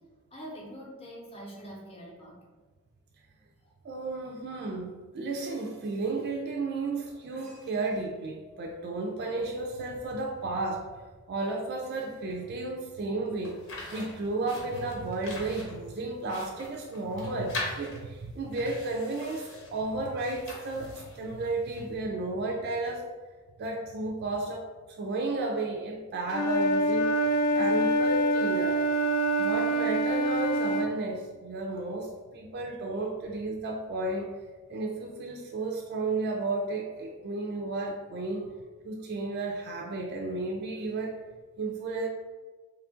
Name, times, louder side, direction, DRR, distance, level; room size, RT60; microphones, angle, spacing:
voice 1, 0.3-2.4, equal, 25° left, -3 dB, 0.7 m, -44 dB
voice 2, 3.8-10.9 11.3-13.6 13.9-23.0 23.6-24.6 25.0-27.1 27.5-28.8 29.4-34.3 34.7-38.6 38.8-41.2 41.6-42.1, right 2 dB, 45° right, 0 dB, 0.3 m, -33 dB
sound 1, 13.4-21.9, left 2 dB, 60° left, 0.9 m, -42 dB
Wind instrument woodwind instrument, 26.3-30.9, right 1 dB, 80° left, 0.3 m, -25 dB
3.1 x 2.4 x 3.6 m, 1.4 s
head